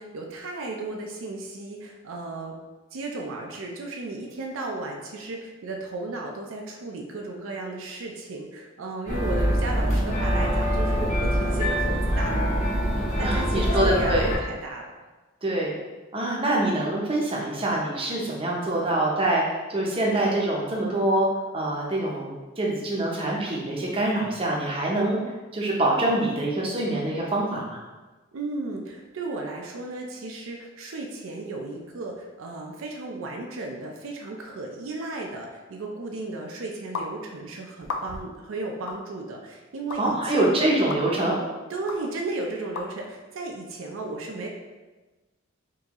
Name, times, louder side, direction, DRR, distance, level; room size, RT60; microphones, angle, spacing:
voice 1, 0.0-2.5 2.9-12.5 13.2-14.9 28.3-40.6 41.7-44.5, right 2 dB, 75° right, 1 dB, 0.5 m, -35 dB
sound 1, 9.1-14.4, equal, 35° left, 0.8 m, -24 dB
voice 2, 13.2-14.3 15.4-15.7 16.1-21.3 21.5-25.2 25.5-27.8 40.0-41.4, right 1 dB, 25° right, -3 dB, 0.6 m, -25 dB
sound 2, 36.9-37.1 37.8-38.3 38.9-39.0 39.9-40.0 40.9-41.0 41.9-42.0 42.8-42.9, left 4 dB, 80° left, 0.4 m, -33 dB
3.7 x 2.7 x 2.9 m, 1.2 s
head